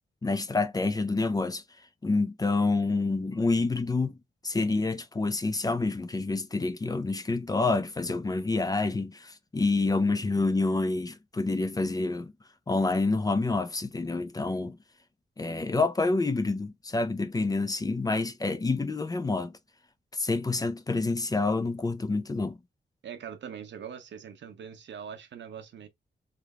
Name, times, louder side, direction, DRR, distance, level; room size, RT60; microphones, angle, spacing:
voice 1, 0.2-1.6 2.0-4.2 4.4-12.3 12.7-14.8 15.4-19.5 20.1-22.6, left 3 dB, 20° left, 0.4 m, -28 dB
voice 2, 23.0-25.9, right 8 dB, 85° right, 0.8 m, -42 dB
4.5 x 3.4 x 2.3 m
wide cardioid pair, 160°, 18 cm